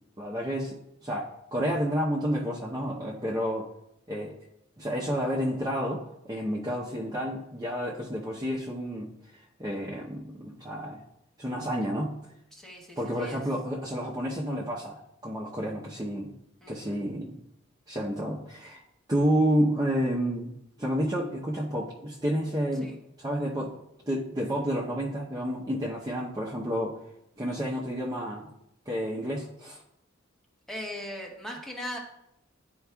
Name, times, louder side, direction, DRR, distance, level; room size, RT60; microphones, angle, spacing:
voice 1, 0.2-3.7 4.1-4.3 4.8-9.1 9.6-11.0 11.4-12.2 13.0-15.0 15.2-16.3 16.7-17.4 17.9-18.8 19.1-20.5 20.8-22.9 23.2-23.7 24.1-27.0 27.4-28.5 28.9-29.8, equal, 20° right, -4 dB, 0.7 m, -30 dB
voice 2, 12.5-13.4 16.6-17.0 22.8-23.0 30.7-32.0, left 1 dB, ahead, -1 dB, 1.0 m, -39 dB
11.0 x 4.6 x 2.3 m, 0.79 s
head